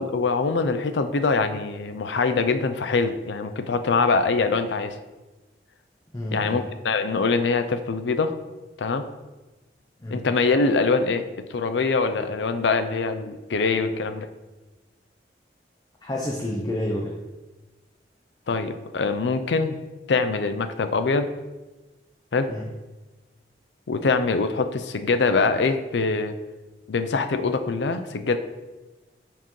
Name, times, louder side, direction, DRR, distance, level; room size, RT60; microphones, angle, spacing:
voice 1, 0.0-5.0 6.3-8.3 8.8-9.0 10.1-11.2 11.5-14.3 18.5-19.8 20.1-21.3 22.3-22.5 23.9-26.3 26.9-28.4, left 4 dB, 85° left, 9 dB, 0.5 m, -23 dB
voice 2, 6.1-6.6 10.0-10.2 16.0-17.2 22.5-22.7, left 1 dB, 20° left, -2 dB, 0.6 m, -29 dB
9.0 x 4.5 x 3.1 m, 1.2 s
head